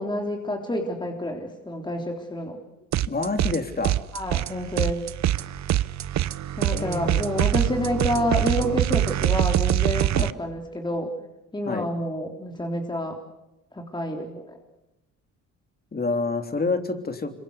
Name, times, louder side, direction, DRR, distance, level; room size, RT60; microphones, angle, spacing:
voice 1, 0.0-2.6 4.1-5.1 6.6-11.1 11.5-13.2 13.7-14.6, left 1 dB, 15° left, 2 dB, 3.6 m, -28 dB
sound 1, 2.9-3.6 3.8-10.3, right 13 dB, 65° right, 0.8 m, -24 dB
voice 2, 3.0-3.9 6.7-7.2 10.1-10.3 11.7-11.9 15.9-17.3, left 3 dB, 30° left, 6 dB, 3.3 m, -27 dB
26.5 x 23.5 x 8.2 m, 0.92 s
cardioid pair, 90°, 30 cm